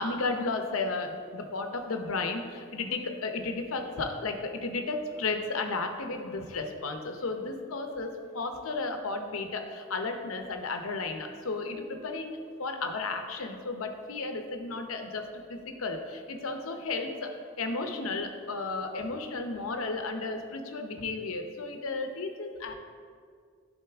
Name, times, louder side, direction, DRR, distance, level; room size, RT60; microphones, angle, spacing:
voice 1, 0.0-15.2 15.5-17.3 17.6-22.7, left 3 dB, 85° left, 5 dB, 0.7 m, -33 dB
11.0 x 4.1 x 3.5 m, 2.1 s
head